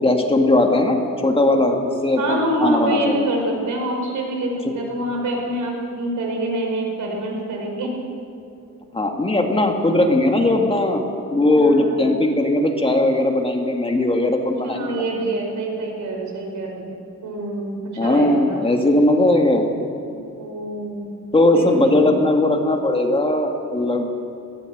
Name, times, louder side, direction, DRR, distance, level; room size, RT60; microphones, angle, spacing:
voice 1, 0.0-3.3 8.9-11.0 11.3-15.0 18.0-19.7 21.3-24.1, left 1 dB, 20° left, 2 dB, 1.9 m, -18 dB
voice 2, 2.2-7.9 11.5-12.0 14.6-16.9 17.2-18.6 20.3-21.2 21.5-22.1, right 1 dB, 80° right, 1 dB, 5.1 m, -26 dB
20.5 x 16.0 x 8.0 m, 2.5 s
wide cardioid pair, 145°, 30 cm